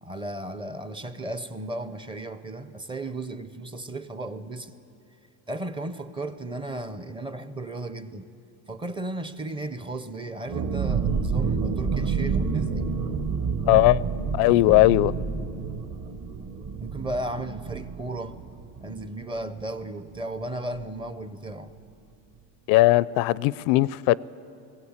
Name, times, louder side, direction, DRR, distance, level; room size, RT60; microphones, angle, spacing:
voice 1, 0.0-4.7 5.5-8.3 8.7-12.9 16.8-18.4 18.8-21.7, right 2 dB, 15° right, 11 dB, 0.5 m, -35 dB
sound 1, 10.5-19.9 20.2-20.3 20.6-20.9, right 5 dB, 50° right, 1.5 m, -29 dB
voice 2, 13.7-14.0 14.3-15.1 22.7-24.2, left 18 dB, 70° left, 21 dB, 0.5 m, -18 dB
20.5 x 17.0 x 8.7 m, 2.6 s
cardioid pair, 145°, 39 cm